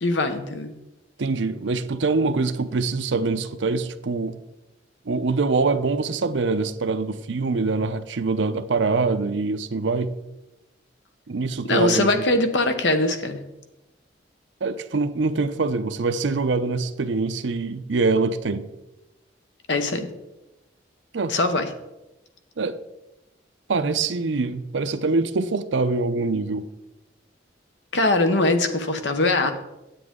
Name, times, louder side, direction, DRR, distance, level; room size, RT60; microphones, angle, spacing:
voice 1, 0.0-0.7 11.7-13.4 19.7-20.1 21.3-21.7 27.9-29.5, left 2 dB, 75° left, 1.0 m, -22 dB
voice 2, 1.2-4.4 5.1-10.1 11.3-12.2 14.6-18.7 21.1-21.3 22.6-22.8 23.7-26.7, right 3 dB, 80° right, 0.6 m, -24 dB
9.8 x 8.5 x 3.7 m
head